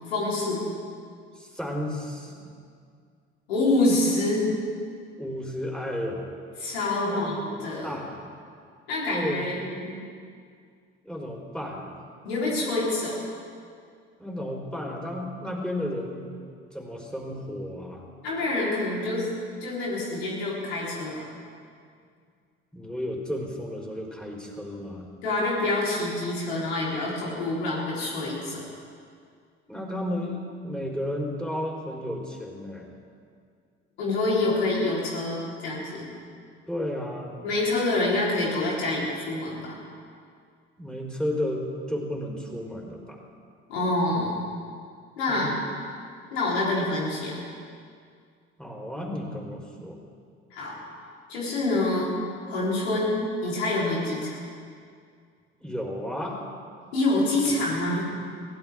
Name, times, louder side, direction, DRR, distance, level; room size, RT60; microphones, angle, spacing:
voice 1, 0.1-0.6 3.5-4.5 6.6-8.0 8.9-10.0 12.2-13.2 18.2-19.3 19.6-21.3 25.2-28.6 34.0-36.1 37.4-39.8 43.7-44.3 45.2-45.6 46.3-47.4 50.5-50.8 51.3-52.2 52.5-54.4 56.9-58.1, left 2 dB, 85° left, -5 dB, 4.2 m, -26 dB
voice 2, 1.3-2.6 5.2-6.3 7.0-7.3 7.8-8.2 9.1-9.7 11.0-11.9 14.2-16.2 16.7-18.1 22.7-25.0 29.7-32.9 36.7-37.4 40.8-43.2 45.3-45.5 48.6-50.0 55.6-56.5, left 1 dB, 5° left, -1 dB, 4.4 m, -33 dB
22.5 x 16.0 x 3.7 m, 2.2 s
hypercardioid pair, 55°, 31 cm